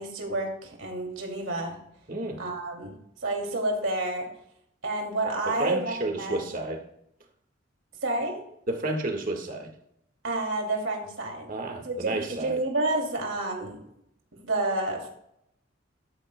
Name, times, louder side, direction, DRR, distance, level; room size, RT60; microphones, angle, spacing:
voice 1, 0.0-1.8 2.4-3.0 3.2-4.3 4.8-6.4 8.0-8.4 10.2-11.6 11.8-13.8 14.4-15.1, right 2 dB, 85° right, 1 dB, 2.6 m, -29 dB
voice 2, 2.1-2.4 5.5-6.8 8.7-9.7 11.5-12.6, right 2 dB, 45° right, 4 dB, 1.6 m, -31 dB
14.0 x 12.5 x 2.2 m, 0.76 s
head